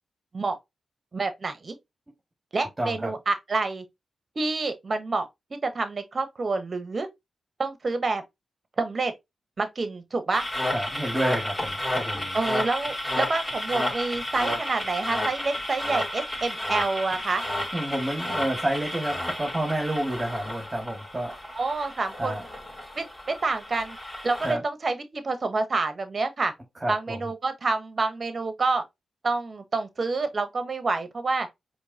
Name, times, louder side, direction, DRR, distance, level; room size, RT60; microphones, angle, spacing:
voice 1, 1.1-1.7 2.5-3.8 4.3-5.3 5.6-7.1 7.6-8.2 8.8-9.1 9.6-10.4 12.3-17.4 21.5-22.4 23.0-24.0 24.2-26.5 26.9-28.8 29.2-31.5, right 3 dB, 50° right, 1.0 m, -28 dB
voice 2, 2.8-3.1 10.7-12.4 17.7-21.3 22.2-22.4 24.4-24.6 26.8-27.2, right 1 dB, 20° right, 1.8 m, -29 dB
sound 1, 10.3-24.5, left 1 dB, 20° left, 3.0 m, -32 dB
4.7 x 3.0 x 2.8 m
supercardioid pair, 45°, 0 cm